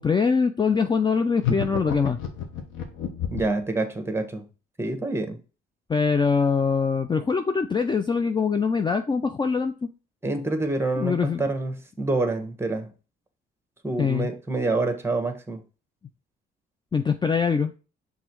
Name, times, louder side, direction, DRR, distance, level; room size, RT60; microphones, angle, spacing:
voice 1, 0.0-2.2 5.9-9.9 11.0-11.4 14.0-14.3 16.9-17.7, left 5 dB, 25° left, 0.4 m, -23 dB
sound 1, 1.4-3.6, left 8 dB, 90° left, 1.2 m, -29 dB
voice 2, 3.3-4.5 4.8-5.4 10.2-12.9 13.8-15.6, right 2 dB, 10° right, 1.2 m, -27 dB
6.1 x 3.6 x 4.5 m
cardioid pair, 90°, 20 cm